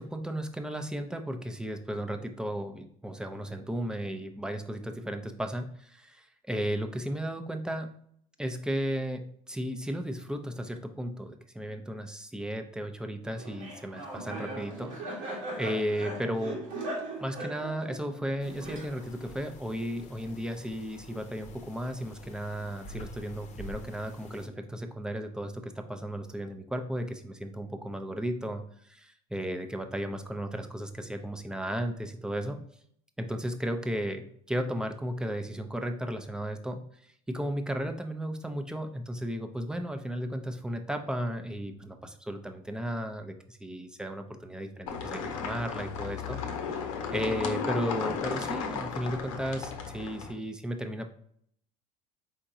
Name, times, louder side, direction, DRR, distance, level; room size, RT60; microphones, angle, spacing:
voice 1, 0.0-7.9 8.4-16.6 17.2-32.6 33.2-46.4 47.1-51.1, equal, 5° right, 6 dB, 0.6 m, -35 dB
Laughter, 13.4-19.3, right 2 dB, 85° right, 1.6 m, -39 dB
sound 1, 18.4-24.5, left 1 dB, 45° left, 0.8 m, -48 dB
sound 2, 44.9-50.3, left 5 dB, 90° left, 0.8 m, -34 dB
4.7 x 3.7 x 2.7 m, 0.67 s
supercardioid pair, 95°, 16 cm